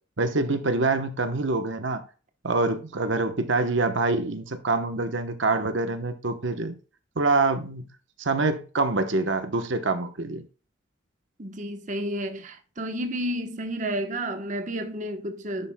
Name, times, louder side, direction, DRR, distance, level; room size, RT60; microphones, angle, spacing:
voice 1, 0.2-2.0 2.4-6.7 7.2-7.8 8.2-10.4, right 3 dB, 70° right, 1.0 m, -25 dB
voice 2, 11.4-15.7, right 1 dB, 40° right, 1.1 m, -31 dB
11.0 x 7.5 x 2.2 m
head